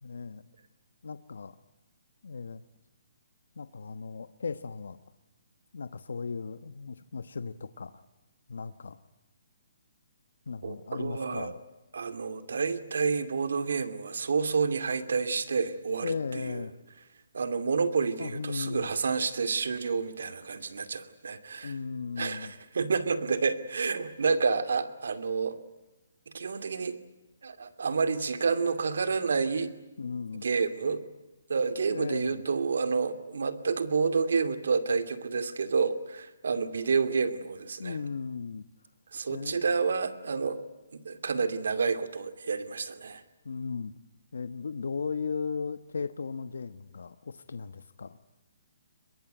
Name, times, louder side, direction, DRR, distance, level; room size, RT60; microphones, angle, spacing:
voice 1, 0.0-0.4 1.0-1.5 2.2-2.6 3.5-5.0 5.7-7.9 8.5-9.0 10.5-11.6 16.0-16.7 18.2-19.0 21.6-22.5 30.0-30.4 31.9-32.4 37.8-38.7 39.3-39.6 43.4-43.9 44.3-48.2, left 5 dB, 80° left, 12 dB, 1.1 m, -36 dB
voice 2, 10.6-11.5 11.9-16.1 16.5-16.6 17.3-21.7 22.2-25.6 26.3-27.0 27.4-29.7 30.4-31.0 31.5-38.0 39.1-40.6 40.9-43.2, right 5 dB, 70° right, 10 dB, 2.4 m, -29 dB
23.0 x 22.0 x 9.0 m, 1.0 s
hypercardioid pair, 175°, 0 cm